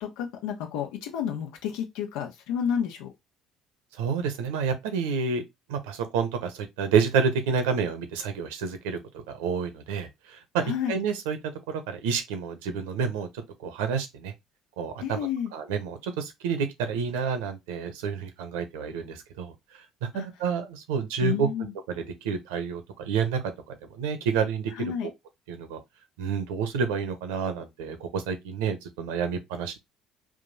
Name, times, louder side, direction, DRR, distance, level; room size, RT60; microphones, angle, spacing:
voice 1, 0.0-3.1 10.6-11.0 15.0-15.5 20.1-20.2 21.2-21.7 24.8-25.1, left 8 dB, 75° left, 1.1 m, -30 dB
voice 2, 4.0-5.4 5.7-9.0 9.3-11.4 11.7-13.3 13.6-14.3 14.8-15.2 15.5-19.5 20.0-21.5 21.9-23.4 23.7-24.9 25.5-25.8 26.2-29.8, right 6 dB, 80° right, 0.9 m, -29 dB
3.7 x 2.6 x 4.0 m
hypercardioid pair, 60°, 0 cm